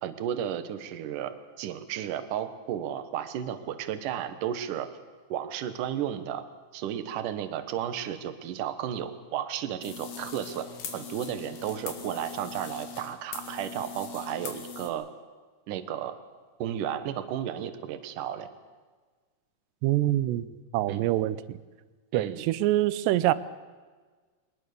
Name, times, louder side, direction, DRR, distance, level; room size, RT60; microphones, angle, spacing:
voice 1, 0.0-4.9 5.3-6.4 6.7-10.7 10.9-15.1 15.7-16.2 16.6-18.5 20.9-21.1 22.1-22.4, right 10 dB, 65° right, 11 dB, 2.4 m, -33 dB
sound 1, 9.8-14.9, left 6 dB, 70° left, 4.1 m, -41 dB
voice 2, 19.8-20.5 20.7-21.6 22.1-23.3, right 15 dB, 85° right, 16 dB, 2.9 m, -25 dB
23.0 x 20.0 x 6.7 m, 1.4 s
omnidirectional pair, 4.8 m